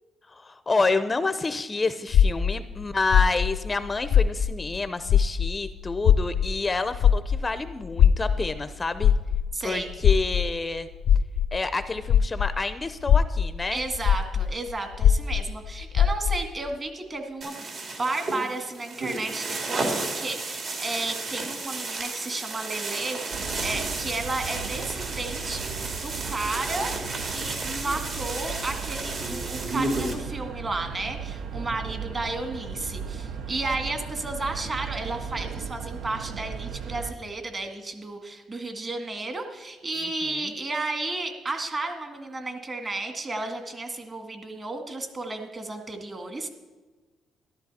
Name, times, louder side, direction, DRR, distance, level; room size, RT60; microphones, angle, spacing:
voice 1, 0.3-9.1 9.6-10.9 11.5-13.8 27.8-28.0 40.5-40.6, left 3 dB, 25° left, 11 dB, 0.6 m, -28 dB
sound 1, 2.1-4.8 5.0-12.6 13.0-16.5, left 8 dB, 80° left, 0.4 m, -21 dB
voice 2, 9.5-9.9 13.7-17.7 18.0-25.7 26.0-26.9 27.2-46.5, right 2 dB, 30° right, 5 dB, 1.9 m, -33 dB
sound 2, 17.4-30.1, right 3 dB, 55° right, 2.6 m, -32 dB
sound 3, 23.3-37.1, right 6 dB, 80° right, 0.7 m, -36 dB
13.0 x 12.0 x 4.2 m, 1.3 s
cardioid pair, 90°, 0 cm